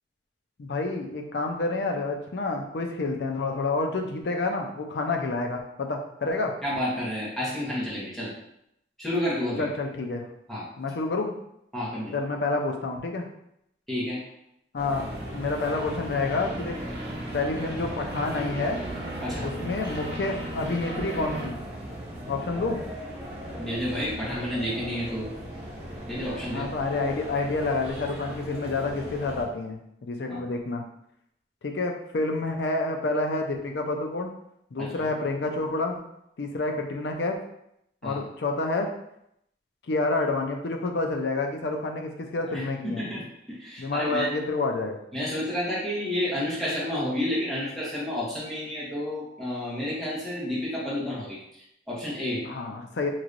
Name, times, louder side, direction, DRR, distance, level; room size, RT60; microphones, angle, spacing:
voice 1, 0.6-6.6 9.6-10.2 10.8-11.3 12.1-13.3 14.7-15.1 15.3-18.8 19.4-21.6 22.3-22.8 26.5-30.8 31.6-34.3 34.7-36.0 36.4-37.4 38.0-38.9 39.9-43.1 43.8-45.0 52.4-53.1, left 3 dB, 70° left, 3 dB, 0.5 m, -29 dB
voice 2, 6.6-8.3 9.0-9.7 10.5-10.6 11.7-12.1 13.9-14.2 19.2-19.5 23.6-25.3 26.1-26.7 30.3-30.4 34.8-35.1 38.0-38.2 42.5-44.3 45.1-52.5, left 1 dB, ahead, -8 dB, 1.0 m, -30 dB
sound 1, 14.8-29.4, equal, 30° right, 1.1 m, -38 dB
sound 2, 14.9-21.5, right 1 dB, 65° right, 0.9 m, -37 dB
3.1 x 2.9 x 2.5 m, 0.77 s
head